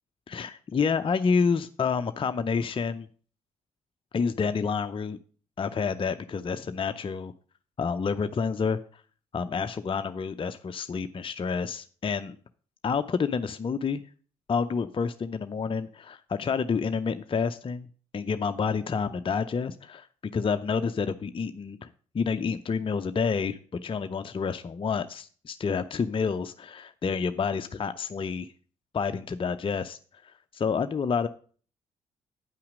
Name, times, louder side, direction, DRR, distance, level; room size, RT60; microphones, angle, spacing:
voice 1, 0.3-3.1 4.1-5.2 5.6-7.3 7.8-8.8 9.3-12.4 12.8-14.0 14.5-17.9 18.1-20.1 20.3-21.9 22.1-28.5 28.9-31.3, left 5 dB, 30° left, 9 dB, 0.6 m, -29 dB
9.1 x 5.8 x 6.1 m, 0.43 s
figure-of-eight pair, 40°, 17 cm